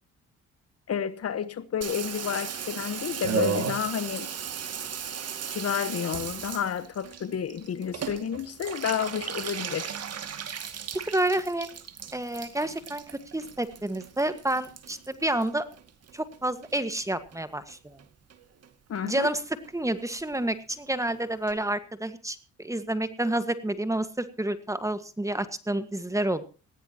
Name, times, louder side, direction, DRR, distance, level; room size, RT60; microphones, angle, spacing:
voice 1, 0.9-4.3 5.5-10.0 18.9-19.3, left 8 dB, 55° left, 1.3 m, -30 dB
Water tap faucet / Bathtub (filling or washing), 1.8-16.4 16.6-17.4 17.7-17.8 18.0-18.1 18.3-18.7 19.0-19.1 19.3-19.4 19.6-19.7 20.0-20.1 20.3-20.4 20.7-20.8 21.1-21.2 21.5-21.6, right 7 dB, 55° right, 2.3 m, -36 dB
voice 2, 10.9-11.7 12.1-15.6 16.1-18.0 19.0-19.4 19.7-26.5, right 1 dB, 10° right, 1.7 m, -29 dB
19.5 x 16.0 x 3.0 m
cardioid pair, 90°, 30 cm